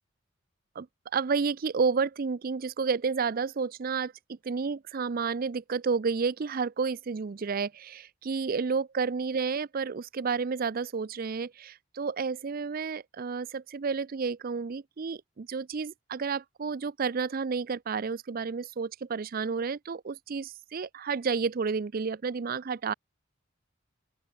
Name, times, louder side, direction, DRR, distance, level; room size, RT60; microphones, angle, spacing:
voice 1, 1.1-22.9, right 5 dB, 45° right, 0.5 m, -31 dB
open air
head